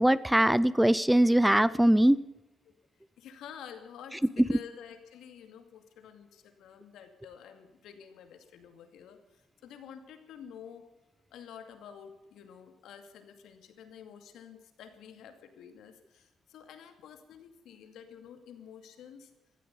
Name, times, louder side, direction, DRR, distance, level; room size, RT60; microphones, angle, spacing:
voice 1, 0.0-2.2 4.4-4.6, right 1 dB, 5° right, 19 dB, 0.5 m, -22 dB
voice 2, 3.2-10.8 11.3-19.3, left 8 dB, 80° left, 7 dB, 2.4 m, -49 dB
16.0 x 14.0 x 5.5 m, 1.0 s
cardioid pair, 90°, 0 cm